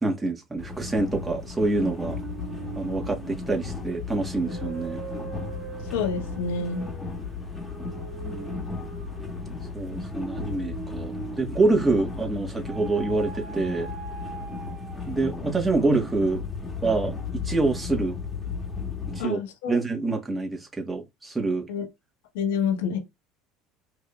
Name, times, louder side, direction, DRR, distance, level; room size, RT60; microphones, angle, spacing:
voice 1, 0.0-2.2 2.8-5.0 8.1-8.7 9.7-13.9 15.1-16.4 16.8-18.2 19.1-19.4 19.7-21.7, right 3 dB, 15° right, 1.4 m, -26 dB
sound 1, 0.6-19.2, left 4 dB, 10° left, 1.5 m, -35 dB
sound 2, 1.9-12.1 12.7-15.4, right 7 dB, 35° right, 1.5 m, -42 dB
voice 2, 5.9-6.8 19.2-19.8 21.7-21.8 22.3-23.0, left 6 dB, 80° left, 1.2 m, -27 dB
4.7 x 2.8 x 2.4 m
hypercardioid pair, 90°, 0 cm